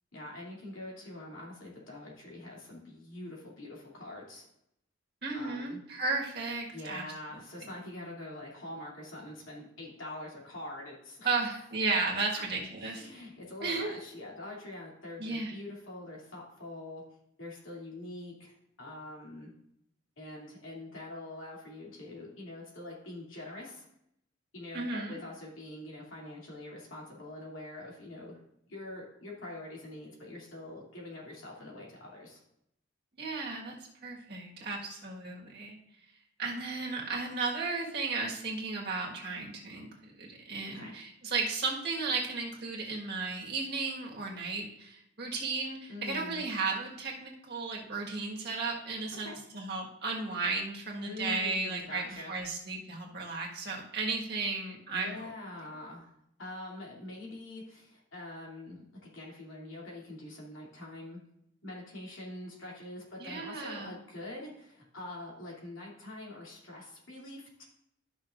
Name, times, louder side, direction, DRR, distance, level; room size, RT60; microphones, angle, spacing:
voice 1, 0.1-4.4 5.3-5.8 6.7-11.6 12.3-12.4 12.8-17.0 17.4-19.5 20.2-23.8 24.5-28.4 28.7-32.4 40.7-40.9 45.9-46.4 49.2-49.4 51.0-52.3 54.9-56.1 56.4-61.2 61.6-67.6, left 2 dB, 80° left, -3 dB, 2.9 m, -44 dB
voice 2, 5.2-7.0 11.2-13.2 13.6-13.9 15.2-15.5 24.7-25.2 33.2-33.8 34.0-35.8 36.4-55.3 63.2-63.9, right 3 dB, 55° right, -2 dB, 1.7 m, -34 dB
12.5 x 6.0 x 2.6 m, 0.78 s
head